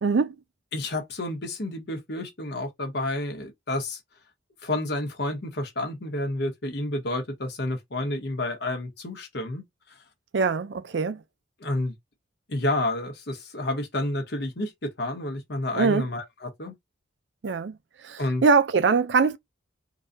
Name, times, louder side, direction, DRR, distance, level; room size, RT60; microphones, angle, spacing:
voice 1, 0.0-0.4 10.3-11.2 15.8-16.1 17.4-17.7 18.0-19.4, right 4 dB, 60° right, 0.4 m, -22 dB
voice 2, 0.7-4.0 4.6-9.6 9.9-10.0 11.6-11.9 12.5-16.7 18.2-18.4, left 1 dB, 60° left, 1.2 m, -30 dB
3.9 x 2.3 x 2.6 m
head